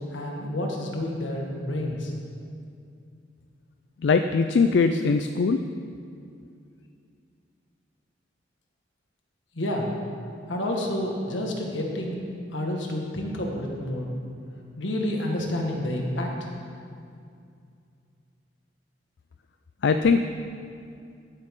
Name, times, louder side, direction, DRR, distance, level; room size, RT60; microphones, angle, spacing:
voice 1, 0.1-2.1 9.6-9.9 10.5-12.3 12.5-14.1 14.8-16.3, left 1 dB, 85° left, 0 dB, 1.6 m, -29 dB
voice 2, 4.0-5.6 19.8-20.2, left 4 dB, 70° left, 8 dB, 0.4 m, -21 dB
15.5 x 8.1 x 3.7 m, 2.4 s
head